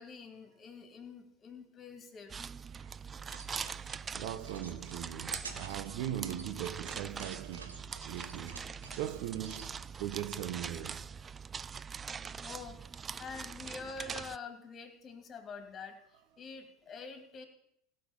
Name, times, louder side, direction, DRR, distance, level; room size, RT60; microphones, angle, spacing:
voice 1, 0.0-2.3 12.4-12.8 13.2-17.5, left 4 dB, 30° left, 2.7 m, -46 dB
sound 1, 2.3-14.4, right 6 dB, 25° right, 0.4 m, -43 dB
sound 2, 3.2-9.7, right 4 dB, 90° right, 1.5 m, -50 dB
voice 2, 4.1-8.7 8.9-11.0, right 11 dB, 65° right, 0.8 m, -40 dB
16.5 x 5.5 x 7.4 m
hypercardioid pair, 85°, 0 cm